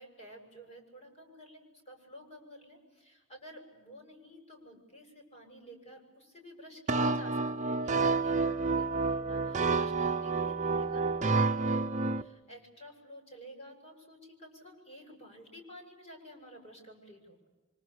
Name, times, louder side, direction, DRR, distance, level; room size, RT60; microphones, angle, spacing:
voice 1, 0.0-12.0 12.5-17.4, equal, 35° left, 2 dB, 6.9 m, -51 dB
sound 1, 6.9-12.2, right 3 dB, 40° right, 0.9 m, -29 dB
26.0 x 24.5 x 8.4 m, 1.2 s
head